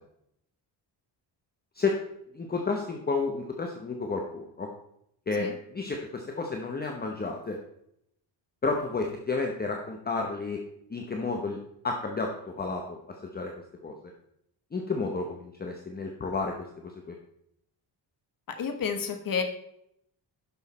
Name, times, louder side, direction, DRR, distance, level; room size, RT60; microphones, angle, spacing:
voice 1, 2.3-4.7 5.3-7.6 8.6-10.6 10.9-11.6 11.8-13.0 13.3-13.5 13.8-14.0 14.7-16.7 17.1-17.2, left 3 dB, 20° left, 2 dB, 0.9 m, -31 dB
voice 2, 18.6-19.4, left 6 dB, 50° left, 6 dB, 1.3 m, -30 dB
11.0 x 6.5 x 4.2 m, 0.75 s
wide cardioid pair, 160°, 44 cm